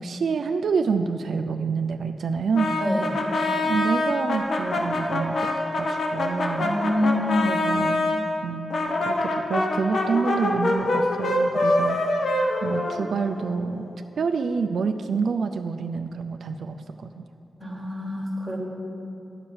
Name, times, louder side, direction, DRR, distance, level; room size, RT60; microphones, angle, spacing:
voice 1, 0.0-2.8 3.6-6.8 7.4-8.1 8.4-13.9 14.2-17.2, right 5 dB, 75° right, 7 dB, 0.3 m, -28 dB
Brass instrument, 2.5-8.2 8.7-13.5, left 1 dB, 65° left, 1.0 m, -25 dB
voice 2, 2.8-3.2 6.6-7.5 17.6-18.6, left 1 dB, 5° right, -3 dB, 1.4 m, -26 dB
10.5 x 4.8 x 7.0 m, 2.7 s
wide cardioid pair, 165°, 0 cm